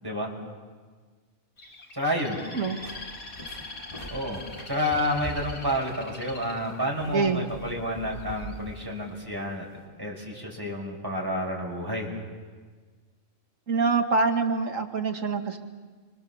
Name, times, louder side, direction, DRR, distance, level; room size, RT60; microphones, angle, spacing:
voice 1, 0.0-0.3 1.9-2.4 4.1-9.7 10.0-12.2, equal, 15° right, -1 dB, 5.5 m, -30 dB
Bird, 1.6-7.6 8.2-8.6, left 3 dB, 75° left, 3.1 m, -43 dB
sound 1, 2.4-9.8, equal, 25° left, 6.9 m, -44 dB
voice 2, 7.1-7.4 13.7-15.6, right 4 dB, 65° right, 4 dB, 2.2 m, -25 dB
29.0 x 25.5 x 7.1 m, 1.5 s
omnidirectional pair, 1.5 m